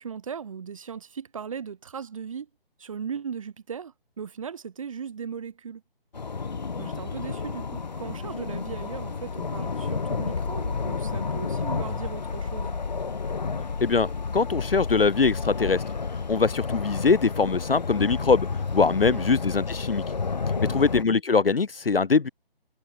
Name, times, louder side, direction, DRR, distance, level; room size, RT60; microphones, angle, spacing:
voice 1, 0.0-2.5 2.8-5.8 6.8-12.8 19.0-19.3 20.6-20.8, right 7 dB, 35° right, 4.6 m, -37 dB
sound 1, 6.1-21.0, left 5 dB, 45° left, 1.7 m, -31 dB
voice 2, 13.8-15.8 16.3-18.5 18.7-20.0 20.7-22.3, left 4 dB, 70° left, 0.7 m, -22 dB
figure-of-eight pair, 150°, 29 cm